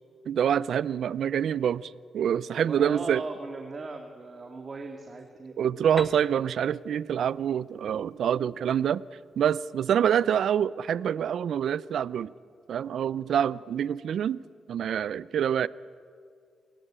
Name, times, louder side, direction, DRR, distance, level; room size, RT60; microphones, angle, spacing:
voice 1, 0.3-3.2 5.6-9.0 9.4-12.3 12.7-14.4 14.7-15.7, right 9 dB, 70° right, 20 dB, 0.5 m, -26 dB
voice 2, 2.6-5.9 9.9-10.1, right 3 dB, 40° right, 4 dB, 2.2 m, -39 dB
Piano, 6.0-9.6, right 1 dB, 5° right, 1.1 m, -45 dB
28.5 x 18.0 x 8.9 m, 2.2 s
cardioid pair, 80°, 0 cm